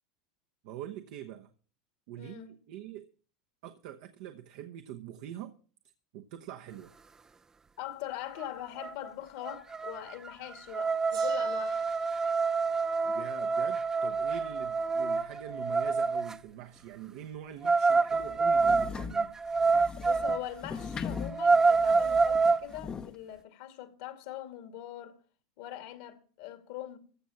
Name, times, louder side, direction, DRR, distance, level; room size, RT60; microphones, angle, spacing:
voice 1, 0.6-1.5 2.1-3.1 3.6-5.6 6.1-6.9 13.0-19.4, right 11 dB, 65° right, 1.0 m, -44 dB
voice 2, 2.2-2.6 7.8-11.8 20.0-25.2 25.6-27.0, left 12 dB, 65° left, 2.2 m, -42 dB
sound 1, 8.4-8.5 8.8-9.1 9.4-16.4 17.6-20.5 20.9-21.0 21.3-22.6, right 4 dB, 20° right, 0.5 m, -27 dB
Gong, 11.1-15.8, right 7 dB, 90° right, 5.1 m, -56 dB
sound 2, 18.1-23.1, left 5 dB, 25° left, 0.8 m, -40 dB
15.0 x 6.3 x 7.1 m
hypercardioid pair, 100°, 3 cm